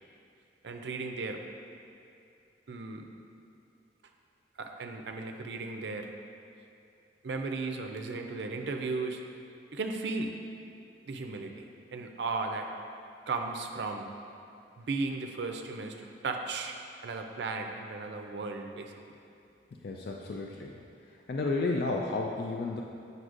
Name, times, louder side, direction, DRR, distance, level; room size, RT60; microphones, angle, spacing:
voice 1, 0.6-1.4 2.7-3.0 4.6-6.1 7.2-9.2 9.7-10.3 11.1-11.5 11.9-12.7 13.3-14.1 14.8-18.9, right 3 dB, 70° right, 4 dB, 0.4 m, -35 dB
voice 2, 19.8-20.7 21.3-22.8, left 3 dB, 60° left, 0 dB, 0.3 m, -32 dB
7.8 x 5.3 x 2.5 m, 2.6 s
head